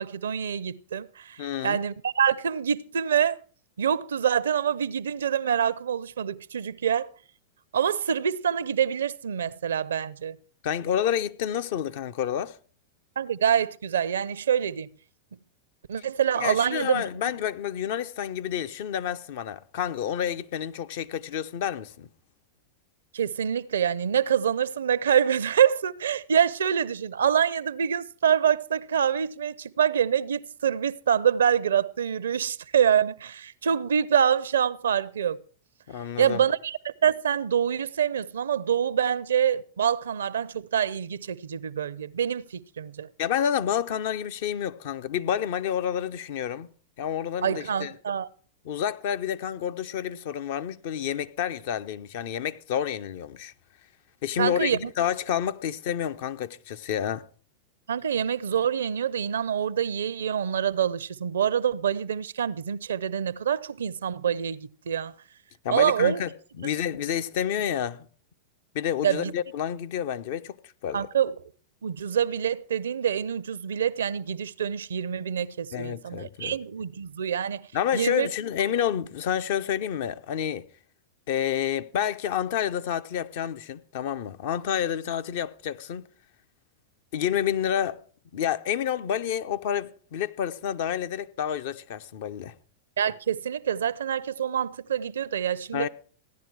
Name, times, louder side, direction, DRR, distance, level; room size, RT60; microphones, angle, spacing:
voice 1, 0.0-1.4 1.6-3.4 3.8-7.1 7.7-10.4 13.2-14.9 15.9-17.0 23.1-35.4 36.2-43.1 47.4-48.3 54.4-54.8 57.9-65.1 65.7-66.2 69.0-69.3 70.9-71.3 71.8-77.7 77.9-78.3 93.0-95.9, right 8 dB, 80° right, 0.5 m, -26 dB
voice 2, 1.4-1.8 10.6-12.6 16.4-22.1 35.9-36.4 43.2-46.7 47.0-47.9 48.6-53.5 54.2-57.2 65.6-66.3 66.6-68.1 68.7-70.6 70.8-71.1 75.7-76.6 77.7-80.6 81.3-86.0 87.1-88.0 88.3-92.5 95.7-95.9, left 9 dB, 60° left, 0.7 m, -29 dB
15.5 x 10.5 x 4.7 m
hypercardioid pair, 105°, 0 cm